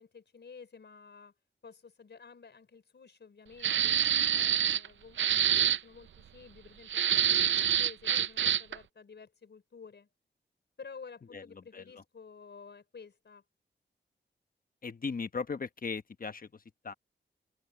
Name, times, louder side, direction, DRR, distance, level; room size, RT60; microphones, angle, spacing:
voice 1, 0.0-1.3 1.6-4.0 4.3-10.1 10.8-13.4, left 5 dB, 65° left, 4.8 m, -51 dB
sound 1, 3.6-4.9 5.2-5.8 6.9-8.8, right 9 dB, 85° right, 0.5 m, -26 dB
voice 2, 14.8-16.5 16.8-16.9, left 5 dB, 50° left, 1.1 m, -37 dB
cardioid pair, 70°, 19 cm